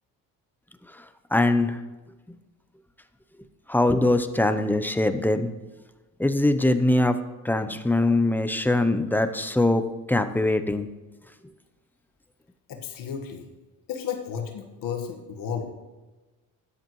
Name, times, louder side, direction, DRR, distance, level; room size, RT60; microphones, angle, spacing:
voice 1, 1.3-1.8 3.7-5.5 6.2-7.2 7.4-10.9, left 2 dB, 5° left, 9 dB, 0.7 m, -22 dB
voice 2, 12.7-13.5 13.9-15.7, left 7 dB, 75° left, 3 dB, 1.6 m, -33 dB
13.0 x 10.5 x 3.1 m, 1.2 s
cardioid pair, 105°, 34 cm